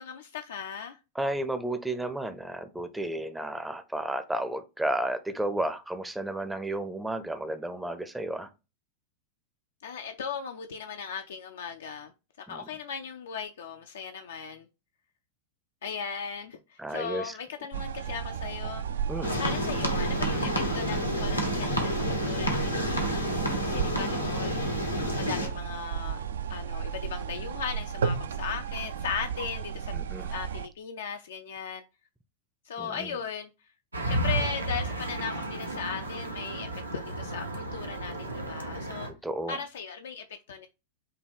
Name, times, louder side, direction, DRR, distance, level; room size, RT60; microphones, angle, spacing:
voice 1, 0.0-1.0 9.8-12.1 12.4-14.7 15.8-18.9 19.4-26.2 26.5-30.1 30.3-31.8 32.6-33.5 34.1-39.1 39.5-40.7, left 6 dB, 60° left, 0.4 m, -37 dB
voice 2, 1.1-8.5 12.5-12.6 16.8-17.4 19.1-19.3 24.9-25.1 29.9-30.3 32.8-33.2 39.1-39.6, right 1 dB, 5° right, 0.5 m, -33 dB
sound 1, 17.7-30.7, right 7 dB, 65° right, 0.3 m, -34 dB
sound 2, 19.2-25.5, left 1 dB, 85° left, 1.0 m, -29 dB
sound 3, 33.9-39.1, right 2 dB, 80° right, 0.7 m, -33 dB
5.5 x 2.2 x 3.4 m
figure-of-eight pair, 90°, 0 cm